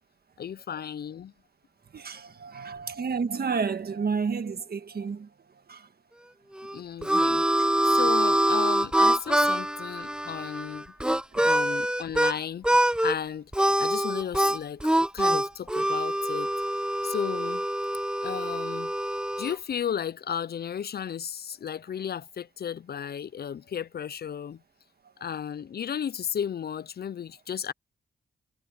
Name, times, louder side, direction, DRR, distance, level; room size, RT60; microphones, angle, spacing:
voice 1, 0.4-1.3 6.7-10.9 11.4-12.7 13.0-13.5 13.8-14.8 15.1-16.5 17.0-17.6 18.2-18.9 19.4-24.6 25.2-27.7, left 8 dB, 55° left, 0.5 m, -34 dB
voice 2, 1.9-5.3 5.7-5.9 7.6-7.7 11.3-11.8, right 5 dB, 55° right, 1.6 m, -31 dB
Harmonica, 6.5-12.3 12.6-13.1 13.5-19.5, right 1 dB, 5° right, 0.9 m, -25 dB
cardioid pair, 85°, 20 cm